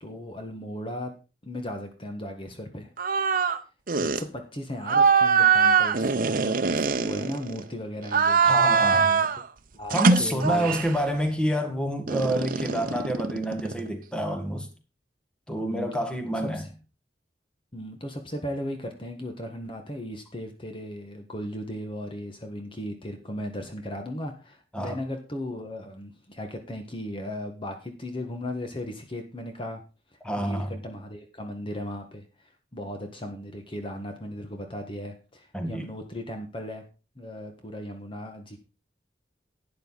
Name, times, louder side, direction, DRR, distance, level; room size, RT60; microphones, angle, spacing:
voice 1, 0.0-1.1 1.4-2.9 4.0-8.4 8.9-9.3 9.7-10.8 15.6-15.9 16.3-16.7 17.7-29.8 30.4-36.8 37.1-38.6, left 1 dB, 30° left, 1.6 m, -37 dB
sound 1, 3.0-3.6 3.9-4.2 4.8-7.6 8.0-9.4 9.9-11.0 12.1-13.9, right 5 dB, 50° right, 0.8 m, -22 dB
voice 2, 8.4-9.2 9.9-14.7 15.5-16.6 24.7-25.0 30.2-30.7 35.5-35.9, equal, 5° left, 1.8 m, -28 dB
12.0 x 9.4 x 4.0 m
head